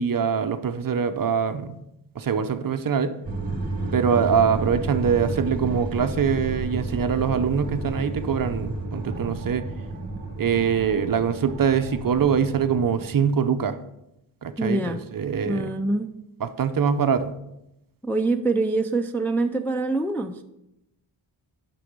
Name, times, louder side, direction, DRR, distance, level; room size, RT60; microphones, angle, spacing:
voice 1, 0.0-1.8 2.2-3.1 3.9-9.6 10.4-13.8 14.4-15.7 16.4-17.3, right 7 dB, 45° right, 10 dB, 0.6 m, -23 dB
sound 1, 3.2-13.2, right 2 dB, 15° right, 1.9 m, -32 dB
voice 2, 14.6-15.0 15.4-16.1 18.0-20.4, right 2 dB, 5° left, 4 dB, 0.3 m, -25 dB
9.9 x 6.1 x 5.1 m, 0.86 s
wide cardioid pair, 165°, 48 cm